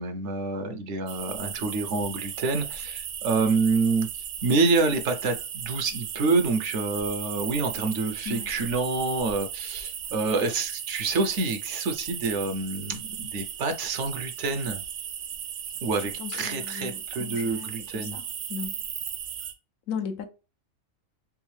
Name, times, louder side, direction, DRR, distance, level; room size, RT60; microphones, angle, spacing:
voice 1, 0.0-4.1 4.4-14.8 15.8-18.2, right 3 dB, 65° right, 0.9 m, -27 dB
sound 1, 1.1-19.5, right 9 dB, 90° right, 1.1 m, -36 dB
voice 2, 16.2-17.7 18.1-18.2 18.5-18.7 19.9-20.2, left 7 dB, 80° left, 1.1 m, -35 dB
3.6 x 3.4 x 3.1 m
omnidirectional pair, 1.4 m